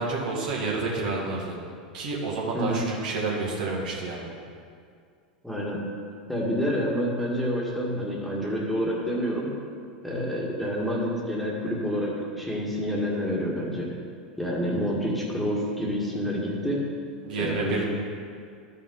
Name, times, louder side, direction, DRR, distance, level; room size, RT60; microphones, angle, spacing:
voice 1, 0.0-1.6 1.9-4.3 17.2-17.8, right 3 dB, 65° right, -3 dB, 2.1 m, -29 dB
voice 2, 2.5-2.8 5.4-5.8 6.3-9.5 10.0-13.9 14.4-16.9 17.4-17.8, equal, ahead, -4 dB, 1.8 m, -28 dB
12.5 x 5.5 x 3.9 m, 2.2 s
hypercardioid pair, 95°, 5 cm